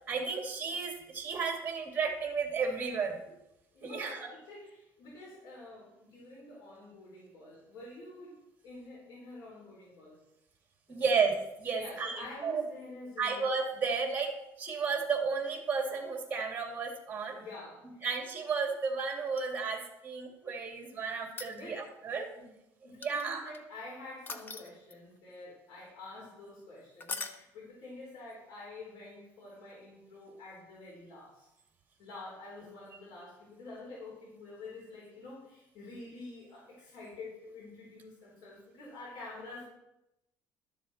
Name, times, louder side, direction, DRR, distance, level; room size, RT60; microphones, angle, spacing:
voice 1, 0.1-3.2 3.8-4.3 10.9-12.6 13.2-17.4 18.0-22.3 23.0-23.5, right 5 dB, 25° right, 2 dB, 2.5 m, -33 dB
voice 2, 3.7-8.3 8.6-10.2 10.9-11.0 11.8-13.5 17.3-18.1 21.5-21.9 22.3-22.5 22.8-31.5 32.0-39.6, left 2 dB, 75° left, -5 dB, 4.2 m, -48 dB
sound 1, 19.3-20.0 21.2-22.0 23.0-23.6 24.3-25.2 27.0-27.4 29.7-29.8, left 4 dB, 30° left, 0.9 m, -41 dB
12.5 x 7.3 x 4.3 m, 0.87 s
cardioid pair, 115°, 7 cm